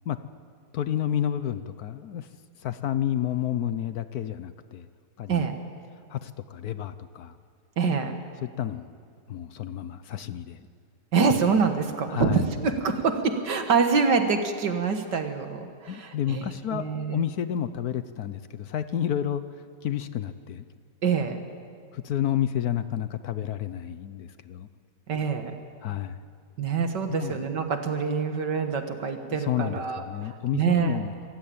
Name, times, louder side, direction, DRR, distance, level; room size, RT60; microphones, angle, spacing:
voice 1, 0.7-2.3 2.6-4.9 5.2-5.5 6.1-7.4 8.4-9.0 9.3-10.6 12.1-12.4 15.9-20.6 21.9-24.7 25.8-26.2 27.1-27.5 29.3-31.1, left 10 dB, 65° left, 12 dB, 1.1 m, -30 dB
voice 2, 7.8-8.2 11.1-17.2 21.0-21.4 25.1-25.5 26.6-30.0 30.5-31.0, right 5 dB, 75° right, 6 dB, 2.2 m, -25 dB
26.5 x 15.5 x 8.7 m, 2.2 s
omnidirectional pair, 1.9 m